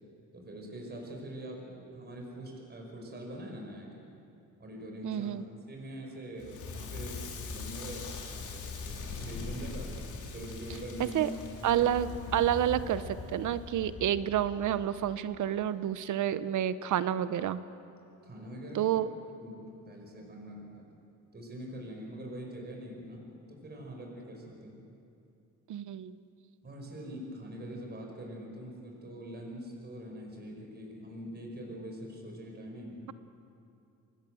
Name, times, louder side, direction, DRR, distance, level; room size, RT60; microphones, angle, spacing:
voice 1, 0.3-4.0 4.6-9.9 10.3-11.3 11.6-11.9 18.2-19.0 19.4-20.9 21.3-24.8 26.6-33.1, equal, 30° right, 0 dB, 5.2 m, -44 dB
voice 2, 5.0-5.4 11.0-11.3 11.6-17.6 18.7-19.1 25.7-26.2, right 10 dB, 65° right, 14 dB, 1.0 m, -29 dB
Crackle, 6.4-15.4, left 4 dB, 65° left, 3.5 m, -41 dB
25.5 x 19.5 x 7.8 m, 2.6 s
cardioid pair, 115°, 32 cm